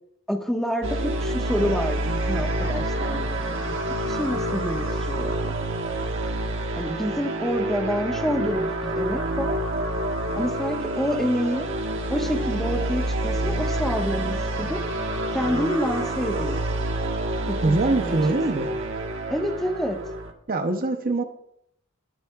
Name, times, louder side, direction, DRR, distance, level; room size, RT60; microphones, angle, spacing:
voice 1, 0.3-5.6 6.8-9.6 10.4-11.7 12.1-14.8 15.3-16.8 17.5-18.6 19.3-20.0, equal, ahead, 2 dB, 1.3 m, -28 dB
sound 1, 0.8-20.3, right 1 dB, 65° right, 1.4 m, -27 dB
voice 2, 17.6-18.7 20.5-21.2, right 2 dB, 45° right, 6 dB, 0.8 m, -23 dB
21.5 x 8.0 x 2.4 m, 0.76 s
head